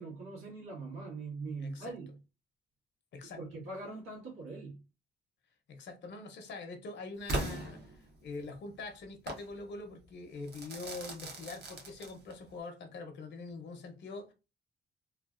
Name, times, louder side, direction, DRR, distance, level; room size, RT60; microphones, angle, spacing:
voice 1, 0.0-2.1 3.4-4.8, right 3 dB, 85° right, 1.5 m, -42 dB
voice 2, 1.6-1.9 3.1-3.4 5.7-7.8 8.2-14.3, left 3 dB, 65° left, 0.8 m, -44 dB
Crackle / Fireworks, 7.3-8.4 9.3-9.5 10.5-12.5, right 1 dB, 55° right, 1.0 m, -38 dB
3.2 x 2.3 x 2.4 m
cardioid pair, 90°, 20 cm